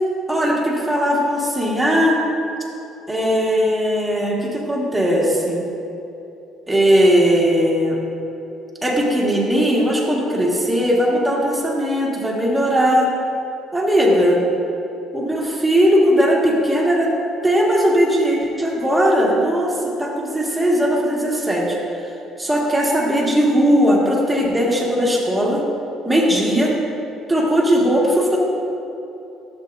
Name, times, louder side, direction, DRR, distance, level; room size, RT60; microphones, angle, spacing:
voice 1, 0.3-2.2 3.1-5.7 6.7-8.0 8.8-13.1 13.7-14.4 15.1-17.1 17.4-21.8 22.4-25.6 26.1-26.8 27.3-28.4, equal, 5° right, -4 dB, 1.8 m, -18 dB
12.0 x 7.6 x 2.7 m, 2.8 s
cardioid pair, 100°, 0 cm